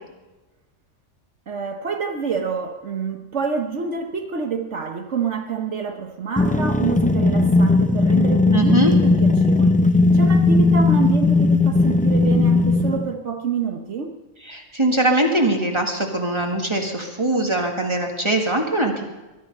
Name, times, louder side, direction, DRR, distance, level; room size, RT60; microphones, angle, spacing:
voice 1, 1.5-9.8 10.1-14.1, right 5 dB, 65° right, 4 dB, 1.3 m, -27 dB
sound 1, 6.4-13.1, left 3 dB, 10° left, 0.4 m, -17 dB
voice 2, 8.5-8.9 14.5-19.0, right 1 dB, 20° right, 1 dB, 1.9 m, -21 dB
21.0 x 11.5 x 5.4 m, 1.1 s
omnidirectional pair, 1.3 m